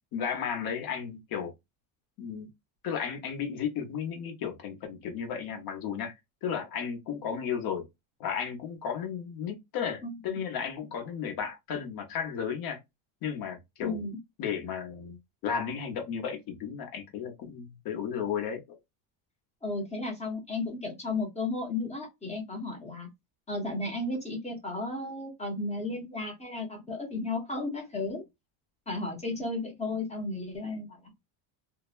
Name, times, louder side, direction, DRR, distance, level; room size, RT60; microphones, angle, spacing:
voice 1, 0.1-1.5 2.2-2.5 2.8-6.1 6.4-7.9 8.2-12.8 13.2-14.0 14.4-15.2 15.4-18.8, left 7 dB, 50° left, 0.9 m, -34 dB
voice 2, 10.0-10.4 13.8-14.2 19.6-23.1 23.5-28.2 28.9-31.0, left 2 dB, 15° left, 0.7 m, -34 dB
2.7 x 2.1 x 2.4 m
cardioid pair, 145°, 48 cm